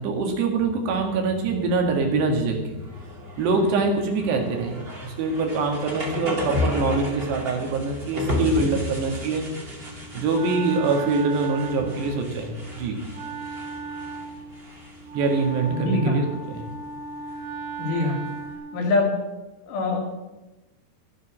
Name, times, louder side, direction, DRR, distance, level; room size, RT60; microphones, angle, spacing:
voice 1, 0.0-2.8 3.4-9.5 10.1-13.0 15.1-16.7, right 3 dB, 75° right, 3 dB, 4.0 m, -24 dB
sound 1, 0.6-18.5, left 2 dB, 25° right, 1.3 m, -34 dB
Wind instrument woodwind instrument, 9.8-18.9, right 4 dB, 55° right, 3.1 m, -37 dB
voice 2, 15.7-16.2 17.8-18.2 18.7-19.2 19.7-20.0, left 3 dB, 80° left, 1 dB, 4.4 m, -24 dB
13.0 x 9.6 x 6.2 m, 1.0 s
omnidirectional pair, 4.9 m